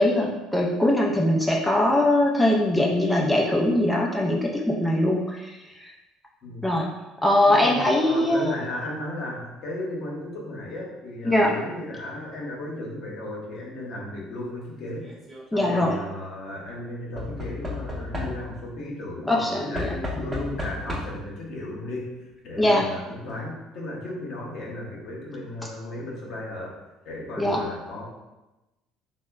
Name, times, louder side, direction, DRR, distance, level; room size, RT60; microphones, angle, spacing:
voice 1, 0.0-5.9 6.6-6.9 7.2-8.5 11.2-11.6 15.5-16.0 19.3-19.9 22.6-22.9 27.4-27.6, left 1 dB, 5° left, -2 dB, 0.3 m, -22 dB
voice 2, 7.4-15.1 15.5-22.2 22.4-26.8 27.0-28.1, left 1 dB, 60° left, -3 dB, 0.8 m, -35 dB
Knock / Wood, 14.9-15.4 17.2-18.7 19.7-21.3 22.4-22.5 22.7-22.8, left 1 dB, 20° right, 0.8 m, -33 dB
3.5 x 2.0 x 2.2 m, 1.1 s
supercardioid pair, 95°, 0 cm